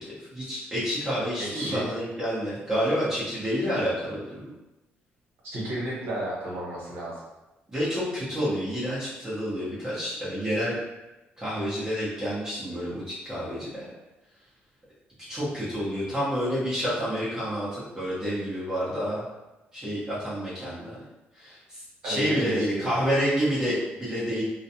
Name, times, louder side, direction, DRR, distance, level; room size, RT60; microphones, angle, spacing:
voice 1, 0.2-4.5 7.7-10.8 11.4-13.8 15.3-19.2 19.7-21.0 21.3-24.4, equal, 15° right, -10 dB, 0.9 m, -29 dB
voice 2, 1.4-1.8 5.4-7.2 22.0-22.9, right 1 dB, 85° right, -6 dB, 1.1 m, -32 dB
2.4 x 2.2 x 2.7 m, 1.0 s
cardioid pair, 130°, 4 cm